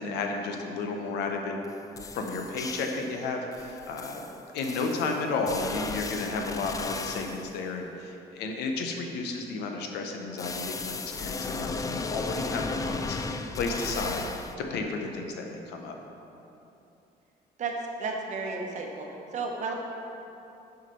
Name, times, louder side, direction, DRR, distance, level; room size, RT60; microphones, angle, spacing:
voice 1, 0.0-1.6 2.1-4.3 4.5-14.3 14.7-16.0, left 3 dB, 80° left, 3 dB, 0.9 m, -32 dB
sound 1, 1.6-1.7 2.0-3.2 3.5-7.5 10.4-14.5, left 3 dB, 20° left, 0.3 m, -35 dB
voice 2, 17.6-19.7, right 4 dB, 45° right, 0 dB, 1.1 m, -33 dB
6.1 x 4.9 x 5.5 m, 2.9 s
cardioid pair, 110°, 17 cm